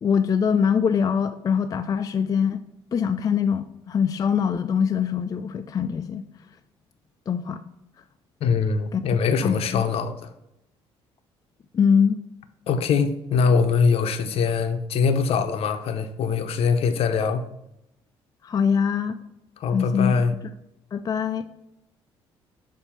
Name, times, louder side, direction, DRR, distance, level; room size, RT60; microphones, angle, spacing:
voice 1, 0.0-2.6 2.9-6.2 7.3-7.6 8.9-9.0 9.4-9.8 11.7-12.2 18.4-19.2 19.7-20.4 20.9-21.5, left 7 dB, 35° left, 8 dB, 0.3 m, -23 dB
voice 2, 8.4-10.1 12.7-17.4 19.6-20.3, left 5 dB, 65° left, 9 dB, 0.6 m, -22 dB
7.1 x 2.7 x 5.5 m, 0.83 s
cardioid pair, 85°, 11 cm